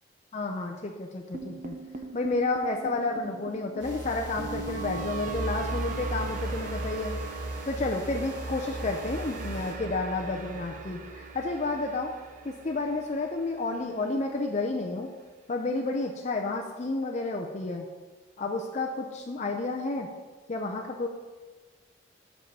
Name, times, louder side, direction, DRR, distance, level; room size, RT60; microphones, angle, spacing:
voice 1, 0.3-1.8 2.1-7.2 7.7-12.1 12.4-15.1 15.5-17.9 18.4-20.1 20.5-21.1, left 3 dB, 35° left, 1 dB, 0.5 m, -31 dB
sound 1, 1.3-13.5, right 3 dB, 40° right, 0.6 m, -38 dB
sound 2, 3.8-9.7, right 1 dB, 65° right, 1.9 m, -39 dB
5.5 x 5.4 x 6.6 m, 1.3 s
head